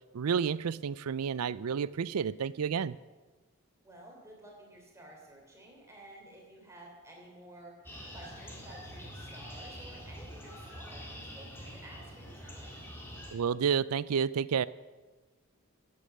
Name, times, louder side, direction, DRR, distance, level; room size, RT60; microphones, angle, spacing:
voice 1, 0.1-3.0 13.3-14.7, right 7 dB, 85° right, 0.4 m, -30 dB
voice 2, 3.8-12.9, right 1 dB, 15° right, 3.3 m, -52 dB
Great Meadows birds, 7.8-13.3, equal, 10° left, 2.1 m, -46 dB
14.0 x 8.5 x 6.8 m
head